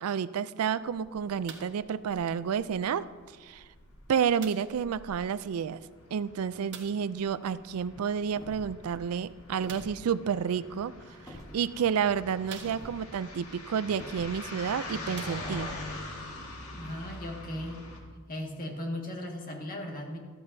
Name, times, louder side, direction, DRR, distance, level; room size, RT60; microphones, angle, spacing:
voice 1, 0.0-3.1 3.4-3.6 4.1-5.8 6.1-10.9 11.2-15.7, right 7 dB, 85° right, 16 dB, 0.4 m, -30 dB
sound 1, 0.9-1.3 1.5-2.7 3.0-3.2 3.5-18.0, left 2 dB, 80° left, 1.8 m, -44 dB
sound 2, 1.5-1.9 2.8-2.9 4.4-4.8 6.7-7.1 9.6-10.1 11.1-11.2 11.8-11.9 12.5-13.2 14.4-14.5 15.1-15.8 16.6-16.7, right 7 dB, 55° right, 1.1 m, -47 dB
sound 3, 8.2-8.8 9.5-10.0 11.3-11.5 12.6-13.0 13.9-14.3, equal, 15° left, 1.5 m, -47 dB
voice 2, 16.7-17.8 18.3-20.2, left 1 dB, 40° left, 1 dB, 1.8 m, -37 dB
14.0 x 13.5 x 2.7 m, 1.5 s
head